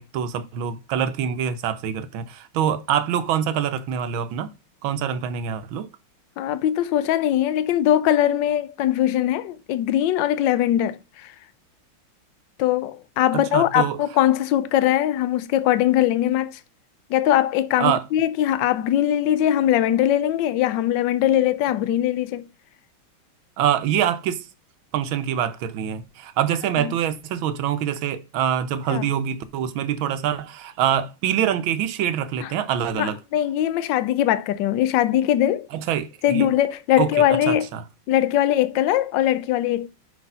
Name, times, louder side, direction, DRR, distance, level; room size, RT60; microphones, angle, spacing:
voice 1, 0.0-4.5 4.8-5.9 13.3-14.0 17.8-18.0 23.6-24.5 24.9-33.2 35.7-36.5 37.0-37.8, right 9 dB, 70° right, 1.5 m, -25 dB
voice 2, 6.4-11.0 11.2-11.3 12.6-16.5 17.1-22.4 26.8-26.9 28.9-29.1 32.4-32.5 32.9-35.7 36.2-37.7 38.1-39.9, left 12 dB, 70° left, 1.2 m, -21 dB
6.0 x 5.8 x 5.4 m
omnidirectional pair, 2.4 m